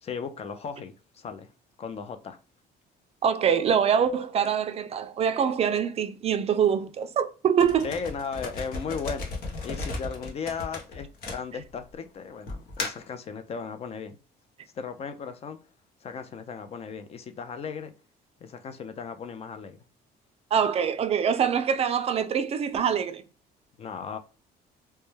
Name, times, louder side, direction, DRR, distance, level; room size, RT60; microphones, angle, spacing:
voice 1, 0.0-1.5 1.8-2.4 7.8-9.3 9.6-14.2 14.7-15.6 16.0-17.9 18.4-19.8 23.8-24.2, left 6 dB, 35° left, 0.4 m, -36 dB
voice 2, 3.2-7.9 20.5-23.2, right 7 dB, 35° right, 0.4 m, -24 dB
sound 1, 7.6-11.9 12.5-13.1, left 3 dB, 60° left, 0.8 m, -35 dB
2.2 x 2.1 x 3.0 m
cardioid pair, 110°, 17 cm